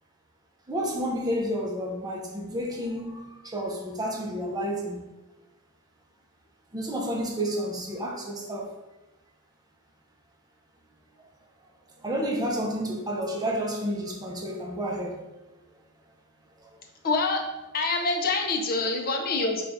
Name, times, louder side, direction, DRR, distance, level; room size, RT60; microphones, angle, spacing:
voice 1, 0.7-5.0 6.7-8.7 12.0-15.2, equal, 20° right, 0.5 m, -30 dB
voice 2, 17.0-17.4 17.7-19.6, left 3 dB, 45° left, 0.6 m, -26 dB
3.5 x 2.3 x 4.0 m
head